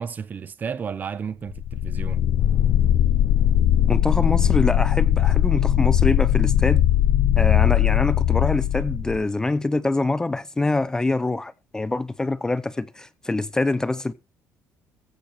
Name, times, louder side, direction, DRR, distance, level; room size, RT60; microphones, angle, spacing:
voice 1, 0.0-2.2, right 6 dB, 30° right, 0.6 m, -32 dB
sound 1, 1.5-9.2, left 12 dB, 55° left, 0.6 m, -20 dB
sound 2, 2.4-9.2, left 8 dB, 75° left, 2.0 m, -28 dB
voice 2, 3.9-6.8 7.4-14.1, left 2 dB, 10° left, 0.5 m, -25 dB
14.5 x 7.9 x 4.2 m
cardioid pair, 165°, 6 cm